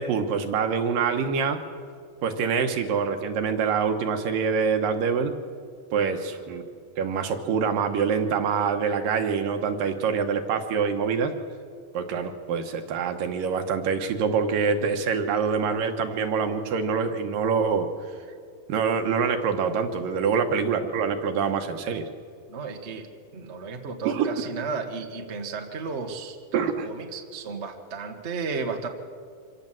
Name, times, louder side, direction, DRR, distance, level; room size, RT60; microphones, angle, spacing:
voice 1, 0.0-1.6 2.2-5.3 5.9-11.3 11.9-17.9 18.7-22.1 24.1-24.3 26.5-26.9, right 6 dB, 75° right, 6 dB, 2.9 m, -25 dB
voice 2, 22.5-23.1 23.3-28.9, right 4 dB, 50° right, 4 dB, 0.8 m, -34 dB
25.5 x 16.5 x 7.7 m, 2.3 s
omnidirectional pair, 4.1 m